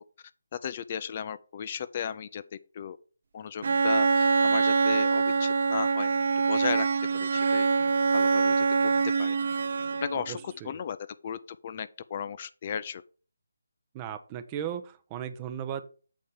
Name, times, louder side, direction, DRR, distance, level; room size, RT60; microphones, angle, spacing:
voice 1, 0.6-2.4 2.7-3.0 3.3-6.1 6.5-6.9 7.2-7.7 8.1-8.7 9.2-9.4 10.0-11.0 11.2-13.0, left 8 dB, 35° left, 0.4 m, -35 dB
Bowed string instrument, 3.6-10.3, right 4 dB, 55° right, 0.3 m, -24 dB
voice 2, 10.1-10.7 13.9-15.8, right 9 dB, 20° right, 0.7 m, -36 dB
7.3 x 4.1 x 6.6 m
figure-of-eight pair, 160°, 0 cm